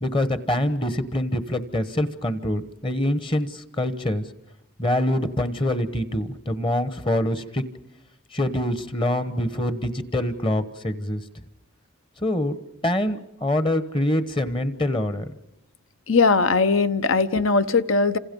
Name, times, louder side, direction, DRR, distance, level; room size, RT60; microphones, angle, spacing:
voice 1, 0.0-4.2 4.8-7.6 8.3-11.2 12.2-15.2, left 1 dB, 25° left, 12 dB, 1.1 m, -25 dB
voice 2, 16.1-18.2, left 4 dB, 65° left, 12 dB, 1.0 m, -19 dB
30.0 x 27.0 x 5.4 m, 0.84 s
head